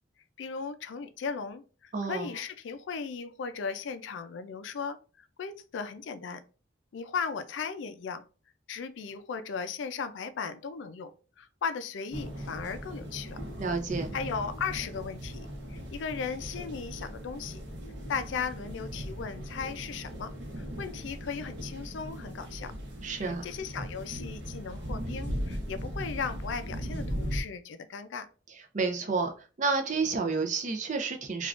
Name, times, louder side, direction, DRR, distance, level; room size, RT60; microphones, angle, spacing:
voice 1, 0.4-6.4 6.9-8.2 8.7-13.4 14.1-17.6 18.1-22.7 23.2-28.3, left 6 dB, 75° left, 11 dB, 0.4 m, -37 dB
voice 2, 1.9-2.3 13.6-14.1 23.0-23.4 28.7-29.3 29.6-31.5, right 4 dB, 40° right, 5 dB, 0.5 m, -30 dB
sound 1, 12.1-27.4, equal, 65° right, 0.8 m, -38 dB
3.5 x 2.3 x 2.4 m, 0.35 s
head